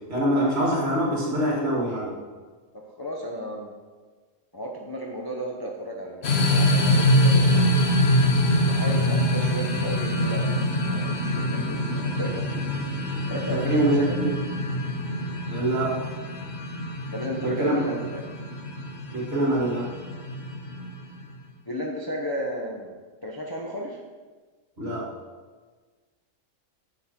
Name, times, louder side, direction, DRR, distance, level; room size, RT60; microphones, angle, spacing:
voice 1, 0.1-2.1 13.7-14.3 15.5-16.0 17.4-17.8 19.1-19.9 24.8-25.1, right 1 dB, 45° right, -4 dB, 2.3 m, -24 dB
voice 2, 2.7-3.7 4.5-7.7 8.7-12.5 13.3-14.2 17.1-18.2 21.7-22.9 23.2-24.0, equal, 25° left, -2 dB, 0.5 m, -33 dB
sound 1, 6.2-21.3, equal, 50° left, 1.1 m, -24 dB
8.6 x 6.6 x 4.3 m, 1.4 s
omnidirectional pair, 1.5 m